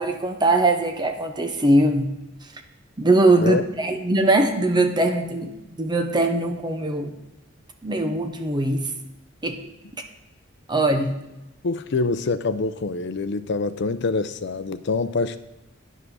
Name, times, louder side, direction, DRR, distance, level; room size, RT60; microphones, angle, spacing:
voice 1, 0.0-2.1 3.0-7.2 7.8-8.9 9.4-9.6 9.9-10.0 10.7-11.2, right 2 dB, 20° right, 6 dB, 0.8 m, -21 dB
voice 2, 11.6-15.4, left 3 dB, 60° left, 12 dB, 0.6 m, -25 dB
9.9 x 5.5 x 6.2 m, 0.97 s
head